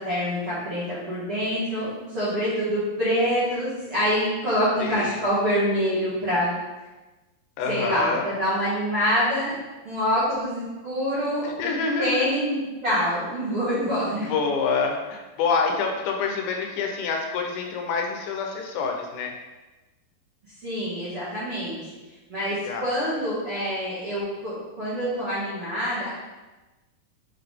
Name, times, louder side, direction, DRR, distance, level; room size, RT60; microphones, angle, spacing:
voice 1, 0.0-6.5 7.7-9.5 9.8-14.3 20.6-21.7 22.3-26.1, equal, 55° right, -12 dB, 1.6 m, -26 dB
voice 2, 4.8-5.3 7.6-8.2 11.4-12.3 14.3-19.3 22.7-23.0, left 4 dB, 85° left, 2 dB, 3.0 m, -27 dB
7.2 x 3.8 x 3.5 m, 1.1 s
omnidirectional pair, 5.1 m